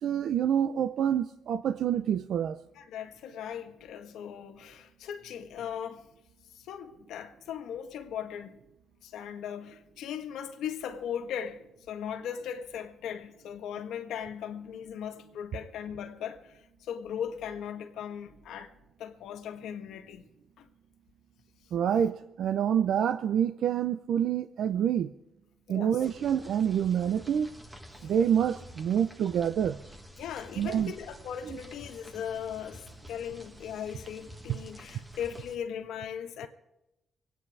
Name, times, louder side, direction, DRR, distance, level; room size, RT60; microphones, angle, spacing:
voice 1, 0.0-2.6 21.7-25.1 25.7-27.5 28.0-29.8 30.6-30.9, right 9 dB, 70° right, 0.6 m, -27 dB
voice 2, 2.7-6.1 6.5-8.6 9.0-18.7 19.0-20.3 20.6-20.7 25.7-26.0 28.0-28.1 30.2-36.5, left 8 dB, 85° left, 1.6 m, -38 dB
sound 1, 26.0-35.6, equal, 10° right, 1.4 m, -49 dB
25.5 x 9.3 x 4.8 m
cardioid pair, 115°, 0 cm